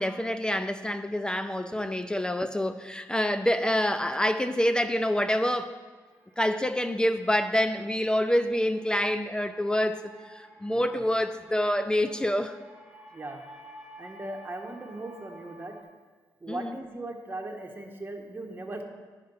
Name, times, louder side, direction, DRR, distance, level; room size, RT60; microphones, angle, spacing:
voice 1, 0.0-5.7 6.4-12.6 16.5-16.8, left 1 dB, 10° left, 10 dB, 0.4 m, -27 dB
sound 1, 5.7-15.8, equal, 10° right, 1.5 m, -53 dB
voice 2, 13.1-13.4 14.0-15.7 16.4-18.8, right 2 dB, 25° right, 2 dB, 1.4 m, -38 dB
10.5 x 5.2 x 5.6 m, 1.4 s
cardioid pair, 75°, 8 cm